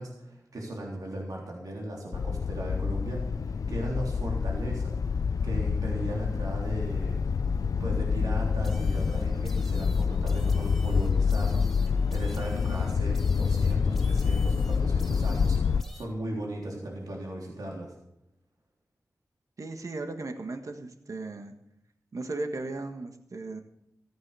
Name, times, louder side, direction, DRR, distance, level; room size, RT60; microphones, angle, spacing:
voice 1, 0.0-7.5 7.8-17.9, right 1 dB, 90° right, -2 dB, 3.5 m, -37 dB
sound 1, 2.1-15.8, left 5 dB, 70° left, 0.4 m, -27 dB
sound 2, 8.6-16.0, left 1 dB, 5° left, 2.4 m, -51 dB
voice 2, 19.6-21.5 22.1-23.6, right 2 dB, 65° right, 6 dB, 1.6 m, -36 dB
15.5 x 8.9 x 7.0 m, 0.79 s
cardioid pair, 55°, 6 cm